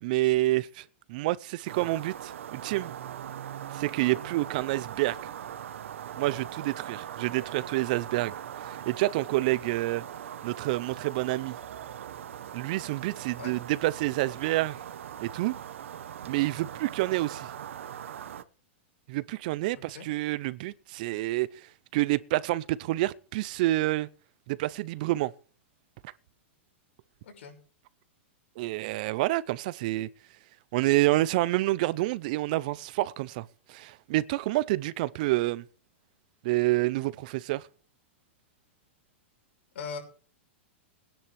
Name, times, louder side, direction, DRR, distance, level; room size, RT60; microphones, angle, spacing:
voice 1, 0.0-2.9 3.7-5.2 6.2-10.0 10.4-11.5 12.5-14.8 15.2-15.6 16.2-17.5 19.1-21.7 21.9-24.1 24.5-25.3 26.0-26.1 28.6-30.1 30.7-35.6 36.4-37.7, right 18 dB, 40° right, 0.5 m, -28 dB
sound 1, 1.7-18.4, right 10 dB, 90° right, 1.0 m, -41 dB
voice 2, 19.7-20.1 27.2-27.5 39.7-40.0, left 5 dB, 75° left, 5.9 m, -40 dB
20.5 x 10.5 x 3.4 m
supercardioid pair, 170°, 7 cm